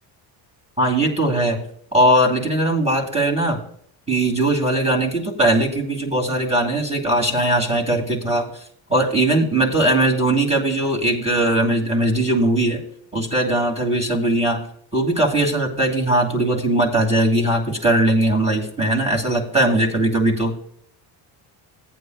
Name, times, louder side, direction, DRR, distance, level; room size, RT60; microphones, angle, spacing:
voice 1, 0.8-1.7 1.9-3.6 4.1-8.6 8.9-12.8 13.1-14.6 14.9-20.5, right 1 dB, 15° right, -2 dB, 2.6 m, -19 dB
14.5 x 9.4 x 2.4 m, 0.66 s
cardioid pair, 90°, 49 cm